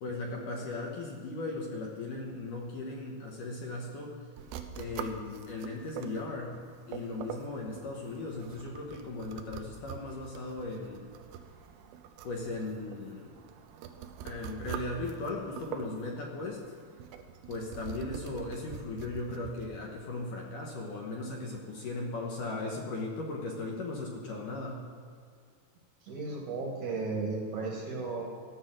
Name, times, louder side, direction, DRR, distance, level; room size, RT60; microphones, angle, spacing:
voice 1, 0.0-4.1 4.7-6.6 6.9-11.0 12.2-13.3 14.2-16.6 17.5-24.8, left 2 dB, 65° left, -1 dB, 2.4 m, -37 dB
sound 1, 4.4-19.8, right 8 dB, 85° right, 2.8 m, -45 dB
voice 2, 26.0-28.2, right 3 dB, 60° right, -1 dB, 2.2 m, -34 dB
14.5 x 6.5 x 7.5 m, 2.2 s
omnidirectional pair, 4.8 m